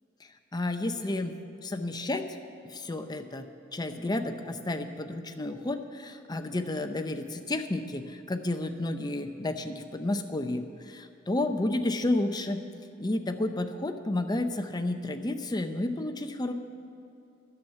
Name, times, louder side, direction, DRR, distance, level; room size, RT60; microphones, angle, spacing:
voice 1, 0.5-1.4 1.6-2.3 2.6-3.5 3.7-12.6 13.0-16.5, left 2 dB, 20° left, 6 dB, 0.7 m, -31 dB
11.0 x 7.1 x 9.2 m, 2.7 s
head